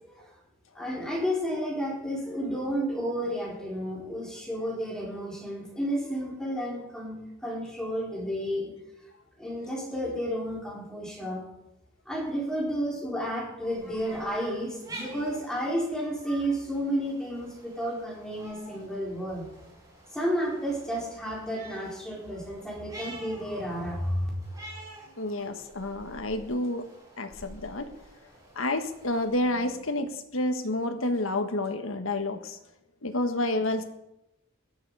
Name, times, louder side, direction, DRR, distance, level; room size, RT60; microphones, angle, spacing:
voice 1, 0.7-8.7 9.4-11.5 12.1-19.4 20.1-24.3, equal, 5° left, -4 dB, 4.3 m, -31 dB
sound 1, 13.6-29.5, right 1 dB, 20° right, 6.1 m, -49 dB
voice 2, 25.2-26.9 27.2-27.9 28.5-32.6 33.0-33.8, left 1 dB, 80° left, 7 dB, 1.6 m, -29 dB
17.0 x 13.0 x 4.9 m, 0.88 s
head